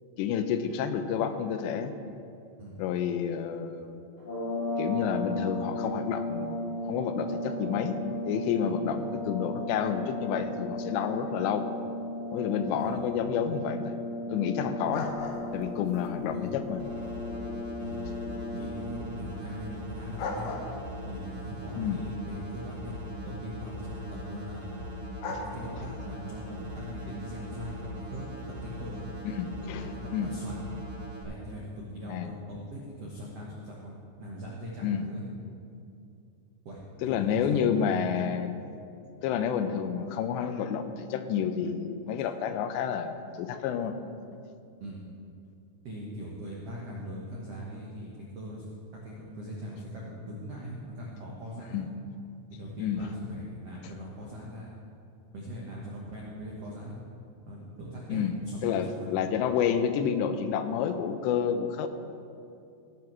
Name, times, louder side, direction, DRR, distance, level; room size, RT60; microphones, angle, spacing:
voice 1, 0.2-1.9 2.8-4.0 4.8-6.6 6.9-8.0 8.3-11.7 12.3-13.9 14.3-15.1 15.5-16.8 21.8-22.0 29.2-30.3 32.1-32.3 34.8-35.1 37.0-38.5 39.2-44.0 51.7-51.9 52.8-53.0 58.1-58.4 58.6-61.9, left 8 dB, 90° left, 9 dB, 2.9 m, -29 dB
sound 1, 4.2-19.3, left 1 dB, 30° left, 3.2 m, -35 dB
sound 2, 14.9-27.1, left 3 dB, 70° left, 2.3 m, -43 dB
sound 3, 16.8-31.2, equal, 15° right, 2.4 m, -40 dB
voice 2, 18.5-20.5 21.0-22.9 23.2-24.8 25.4-28.3 28.6-29.1 29.7-30.6 31.2-35.2 36.6-38.2 44.8-45.0 45.8-48.7 49.0-51.8 52.5-54.7 55.3-57.0 57.5-59.1, equal, 75° right, -4 dB, 1.4 m, -41 dB
16.0 x 6.0 x 6.1 m, 2.5 s
omnidirectional pair, 4.9 m